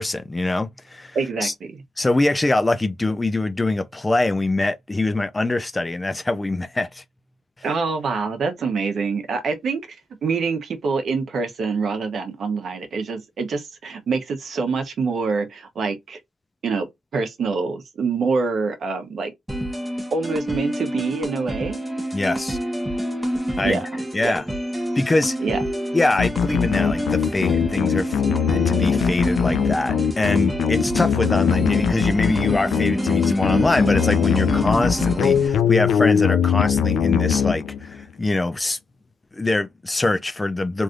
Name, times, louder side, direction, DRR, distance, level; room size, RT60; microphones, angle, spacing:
voice 1, 0.0-1.5 2.0-7.0 22.1-22.6 23.6-24.5 25.0-25.4 25.9-38.8 39.3-40.8, left 2 dB, 20° left, 0.5 m, -23 dB
voice 2, 1.1-1.5 7.6-9.8 10.2-16.2 16.6-19.3 20.1-21.8 23.6-23.8 24.2-24.3 25.4-25.6, right 4 dB, 60° right, 0.9 m, -25 dB
sound 1, 19.5-35.5, equal, 10° right, 1.0 m, -28 dB
sound 2, 26.2-38.0, left 7 dB, 80° left, 0.4 m, -21 dB
3.2 x 2.6 x 2.4 m
cardioid pair, 70°, 0 cm